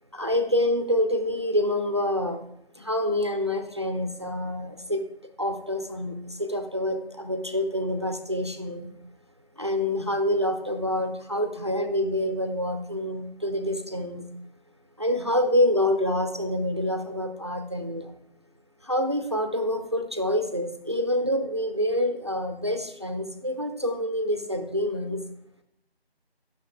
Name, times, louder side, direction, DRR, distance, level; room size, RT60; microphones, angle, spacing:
voice 1, 0.1-2.4 2.8-5.0 5.4-8.9 9.6-14.2 15.0-18.1 18.8-25.2, left 1 dB, 25° right, 7 dB, 0.6 m, -27 dB
12.0 x 6.2 x 4.6 m, 0.78 s
figure-of-eight pair, 165°, 31 cm